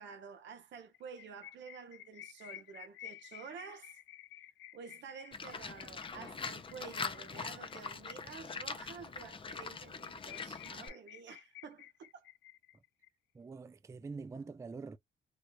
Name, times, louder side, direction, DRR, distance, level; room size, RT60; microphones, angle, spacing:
voice 1, 0.0-4.0 4.7-12.3, right 6 dB, 70° right, 0.9 m, -50 dB
sound 1, 0.9-8.9 9.3-9.4 9.6-9.7 10.0-13.1, left 13 dB, 75° left, 0.4 m, -53 dB
Livestock farm animals working animals, 5.3-10.9, left 5 dB, 25° left, 0.6 m, -43 dB
voice 2, 13.3-15.0, right 4 dB, 15° right, 0.3 m, -45 dB
3.2 x 2.4 x 2.9 m
cardioid pair, 90°, 20 cm